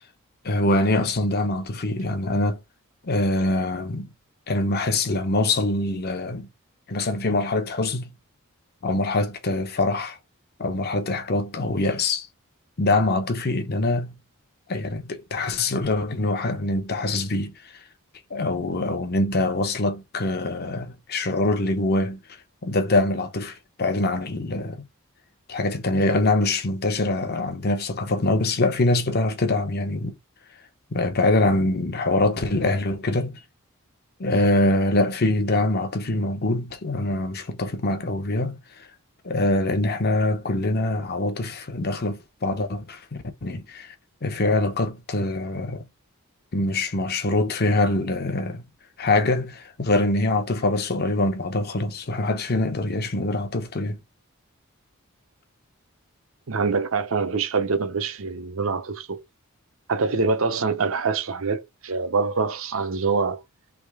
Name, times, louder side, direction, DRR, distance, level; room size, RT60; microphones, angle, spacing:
voice 1, 0.4-2.6 3.0-4.1 4.5-6.5 6.9-8.1 8.8-10.2 10.6-12.3 12.8-14.2 14.7-17.8 18.3-24.8 25.5-30.2 30.9-33.4 34.2-38.9 39.2-43.9 44.2-45.8 46.5-48.6 49.0-54.0, left 2 dB, 45° left, 0.8 m, -24 dB
voice 2, 56.5-59.2 59.9-63.4, right 4 dB, 60° right, 0.7 m, -25 dB
3.5 x 3.1 x 4.7 m
head